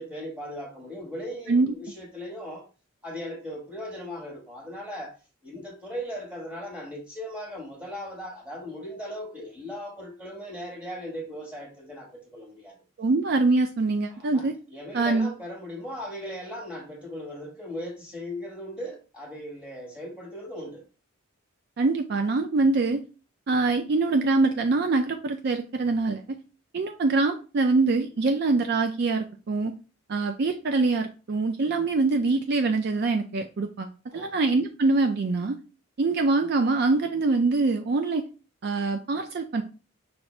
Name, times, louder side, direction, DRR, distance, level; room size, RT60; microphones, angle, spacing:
voice 1, 0.0-2.7 3.0-5.1 5.4-12.8 14.1-14.4 14.7-20.8 34.1-34.4, equal, 5° right, -2 dB, 1.5 m, -38 dB
voice 2, 13.0-14.5 14.9-15.3 21.8-23.0 23.5-26.4 26.7-29.7 30.1-35.6 36.0-38.2 38.6-39.6, right 3 dB, 50° right, 5 dB, 0.4 m, -24 dB
5.9 x 2.6 x 3.2 m, 0.34 s
head